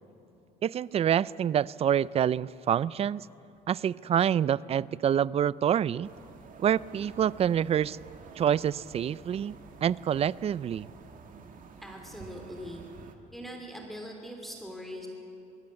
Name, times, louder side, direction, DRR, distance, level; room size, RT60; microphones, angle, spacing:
voice 1, 0.6-3.3 3.7-6.1 6.6-8.0 8.4-9.6 9.8-10.9, right 9 dB, 35° right, 21 dB, 0.4 m, -27 dB
sound 1, 6.0-13.2, right 5 dB, 55° right, 2.0 m, -50 dB
voice 2, 11.8-12.9 13.3-15.1, equal, ahead, 1 dB, 3.1 m, -41 dB
23.5 x 17.0 x 8.5 m, 2.9 s
cardioid pair, 110°, 17 cm